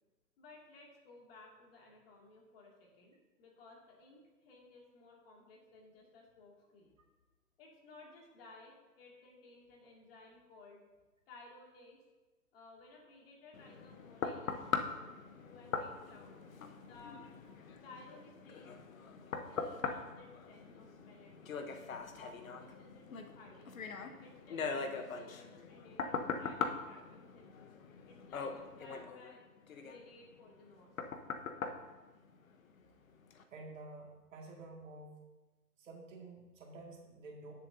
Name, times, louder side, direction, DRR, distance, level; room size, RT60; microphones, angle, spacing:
voice 1, 0.4-6.9 7.6-10.8 11.3-12.0 12.5-15.1 15.4-16.4 16.8-17.2 17.8-18.7 19.5-21.6 22.1-23.7 24.2-27.7 28.1-29.4 29.8-30.9, left 2 dB, 35° left, -1 dB, 2.3 m, -58 dB
sound 1, 13.5-32.8 33.3-33.4, left 5 dB, 55° left, 1.0 m, -42 dB
voice 2, 33.5-35.2 35.8-37.5, right 2 dB, 50° right, 0 dB, 2.1 m, -50 dB
18.0 x 6.9 x 2.7 m, 1.2 s
figure-of-eight pair, 135°, 49 cm